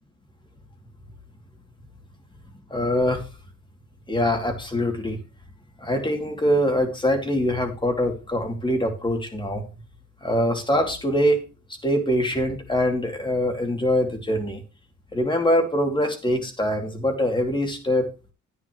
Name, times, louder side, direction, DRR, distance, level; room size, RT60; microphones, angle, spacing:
voice 1, 2.7-3.2 4.1-5.2 5.8-9.7 10.2-11.4 11.8-14.6 15.1-18.1, equal, 15° left, 4 dB, 2.8 m, -23 dB
9.9 x 9.9 x 3.1 m, 0.33 s
cardioid pair, 90°, 30 cm